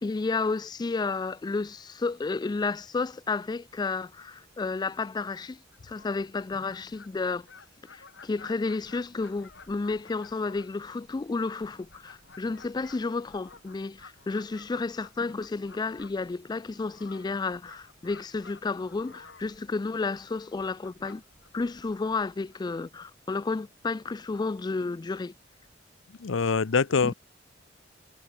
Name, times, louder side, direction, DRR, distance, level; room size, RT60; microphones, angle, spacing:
voice 1, 0.0-7.5 7.9-21.2 21.5-25.3 27.0-27.1, left 3 dB, 20° left, 0.3 m, -31 dB
Fowl, 5.6-23.0, left 4 dB, 70° left, 7.9 m, -54 dB
voice 2, 26.2-27.1, left 5 dB, 85° left, 0.7 m, -24 dB
head